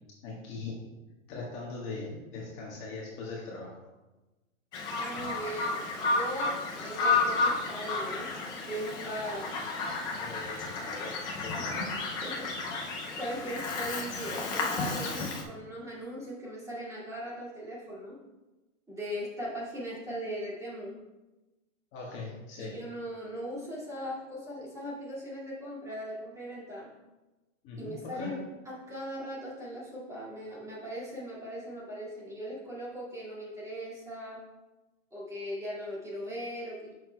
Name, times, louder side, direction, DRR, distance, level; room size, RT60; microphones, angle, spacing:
voice 1, 0.2-0.8 1.3-3.8 9.8-11.1 11.4-11.9 21.9-22.7 27.6-28.4, left 3 dB, 30° left, -4 dB, 1.4 m, -40 dB
Bird vocalization bird call bird song, 4.7-15.4, left 3 dB, 10° left, 0.4 m, -32 dB
voice 2, 4.9-8.3 8.6-9.6 11.6-11.7 12.2-12.5 13.1-18.2 18.9-21.0 22.6-26.9 27.8-28.4 28.7-34.4 35.1-36.9, equal, 10° right, -7 dB, 2.1 m, -39 dB
9.9 x 6.3 x 2.2 m, 1.1 s
hypercardioid pair, 140°, 40 cm